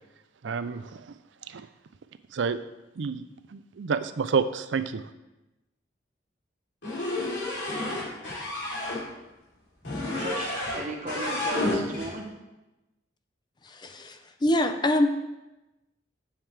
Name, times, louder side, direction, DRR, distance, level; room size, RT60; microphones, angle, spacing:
voice 1, 0.4-1.0 1.5-1.7 2.3-2.6 3.0-3.2 3.5-5.0, right 5 dB, 85° right, 12 dB, 0.5 m, -29 dB
sound 1, 6.8-9.0 9.8-10.8 11.1-12.1, left 2 dB, 75° left, 3.4 m, -30 dB
voice 2, 10.2-12.3, right 2 dB, 40° right, 1 dB, 1.1 m, -36 dB
voice 3, 13.7-15.1, left 1 dB, 25° left, 7 dB, 0.5 m, -25 dB
10.5 x 7.3 x 3.4 m, 1.0 s
head